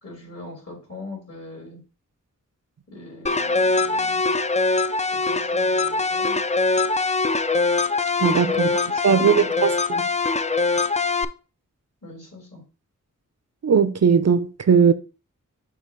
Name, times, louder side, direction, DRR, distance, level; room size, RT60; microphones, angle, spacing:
voice 1, 0.0-1.8 2.9-4.3 5.1-6.4 8.5-9.7 12.0-12.7, left 2 dB, 50° left, 3.9 m, -41 dB
sound 1, 3.3-11.3, left 3 dB, 20° left, 0.4 m, -22 dB
voice 2, 8.2-8.7 9.0-9.7 13.6-14.9, right 6 dB, 55° right, 0.5 m, -18 dB
6.5 x 2.9 x 5.2 m
wide cardioid pair, 65°, 32 cm